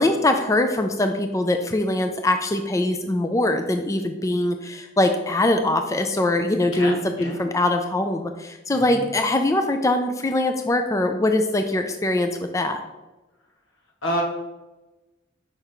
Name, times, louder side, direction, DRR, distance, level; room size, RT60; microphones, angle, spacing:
voice 1, 0.0-12.8, left 1 dB, 15° left, 6 dB, 0.3 m, -22 dB
voice 2, 6.7-7.4 8.7-9.1 14.0-14.2, equal, 85° left, 0 dB, 1.7 m, -28 dB
5.8 x 4.5 x 5.0 m, 1.1 s
head